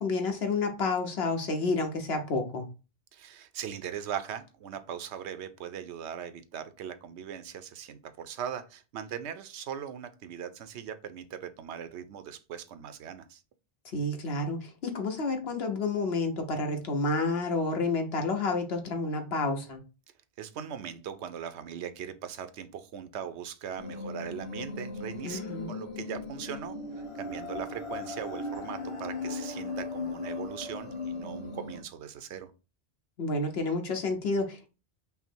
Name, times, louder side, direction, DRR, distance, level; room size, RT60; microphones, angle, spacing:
voice 1, 0.0-2.7 13.9-19.8 25.2-25.7 33.2-34.7, left 3 dB, 70° left, 5 dB, 1.2 m, -30 dB
voice 2, 3.1-13.4 20.4-32.5, right 8 dB, 85° right, 11 dB, 0.9 m, -40 dB
sound 1, 23.8-31.8, left 3 dB, 30° left, 1.0 m, -38 dB
5.6 x 2.0 x 4.4 m, 0.32 s
omnidirectional pair, 1.1 m